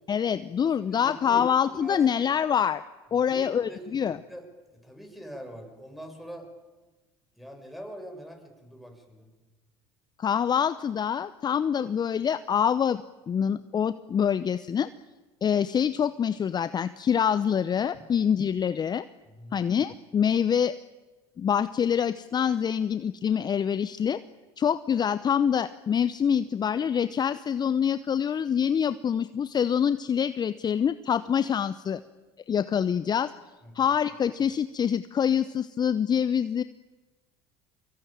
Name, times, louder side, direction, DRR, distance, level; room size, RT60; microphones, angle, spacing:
voice 1, 0.1-2.8 3.1-4.2 10.2-14.9 15.4-19.0 19.5-20.8 21.4-24.2 24.6-32.0 32.5-33.3 33.7-36.6, left 8 dB, 30° left, 14 dB, 0.8 m, -25 dB
voice 2, 0.6-1.4 1.7-2.0 3.1-4.4 4.7-6.5 7.4-9.3 17.9-18.0 19.3-19.6 33.6-33.9, equal, ahead, 5 dB, 7.0 m, -44 dB
25.0 x 23.5 x 9.1 m, 1.2 s
hypercardioid pair, 75°, 14 cm